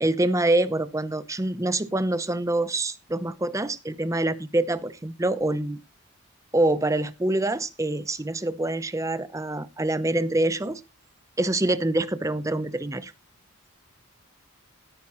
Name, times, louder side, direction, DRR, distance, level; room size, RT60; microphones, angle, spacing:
voice 1, 0.0-5.8 6.5-10.8 11.4-13.1, right 2 dB, 15° right, 0.6 m, -25 dB
16.5 x 9.5 x 3.0 m
head